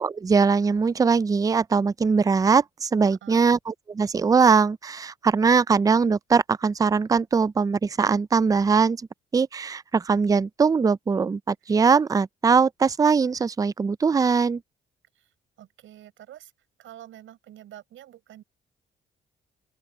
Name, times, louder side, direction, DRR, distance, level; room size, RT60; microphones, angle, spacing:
voice 1, 0.0-9.0 9.3-14.6, right 5 dB, 20° right, 0.4 m, -21 dB
voice 2, 3.1-3.4 11.6-11.7 15.1-16.5 16.8-18.4, right 12 dB, 80° right, 6.3 m, -47 dB
open air
cardioid pair, 90°, 20 cm